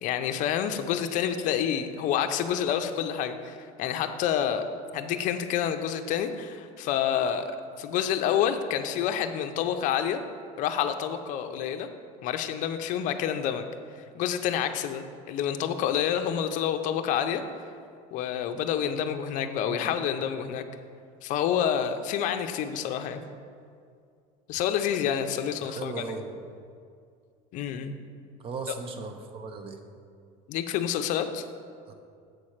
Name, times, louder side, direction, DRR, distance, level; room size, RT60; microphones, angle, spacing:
voice 1, 0.0-4.6 4.9-7.5 7.8-10.2 10.6-11.9 12.2-13.7 14.1-17.4 18.1-20.6 21.2-23.2 24.5-26.0 27.5-27.9 30.5-31.4, left 9 dB, 50° left, 8 dB, 0.6 m, -28 dB
voice 2, 19.6-19.9 25.6-26.4 28.4-29.8 31.9-32.0, right 4 dB, 35° right, 6 dB, 0.7 m, -37 dB
7.8 x 4.3 x 6.4 m, 2.3 s
cardioid pair, 145°, 17 cm